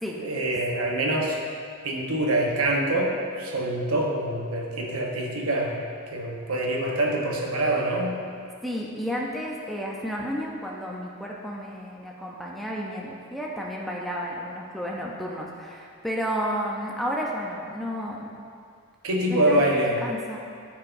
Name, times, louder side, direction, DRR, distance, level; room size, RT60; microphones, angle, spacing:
voice 1, 0.2-1.4 1.8-5.8 6.1-8.1 19.0-19.9, right 1 dB, 75° right, -1 dB, 1.0 m, -25 dB
voice 2, 8.6-18.3 19.3-20.4, equal, ahead, -3 dB, 0.5 m, -32 dB
12.0 x 4.7 x 2.6 m, 2.3 s
head